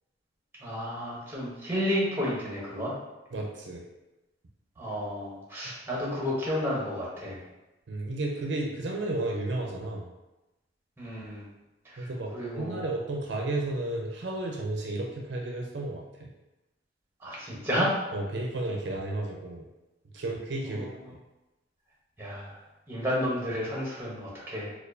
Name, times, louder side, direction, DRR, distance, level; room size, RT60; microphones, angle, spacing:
voice 1, 0.6-2.9 4.8-7.4 11.0-11.4 11.8-12.1 12.3-12.8 17.2-17.9 20.7-20.9 22.2-22.6 22.9-24.7, equal, 10° right, -5 dB, 0.8 m, -31 dB
voice 2, 3.3-3.8 7.9-10.1 12.0-16.3 18.1-19.7 20.1-21.2, right 2 dB, 65° right, 0 dB, 0.5 m, -33 dB
4.3 x 2.3 x 2.6 m, 1.0 s
head